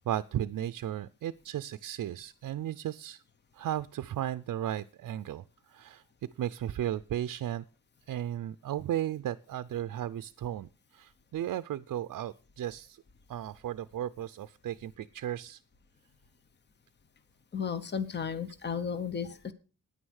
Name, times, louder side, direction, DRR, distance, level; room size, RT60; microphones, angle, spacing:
voice 1, 0.0-3.2 3.6-6.0 6.4-7.6 8.1-13.0 13.3-15.6, right 11 dB, 70° right, 12 dB, 0.5 m, -35 dB
voice 2, 17.5-19.5, left 6 dB, 30° left, 12 dB, 0.9 m, -34 dB
9.7 x 9.7 x 6.3 m, 0.37 s
wide cardioid pair, 160°, 32 cm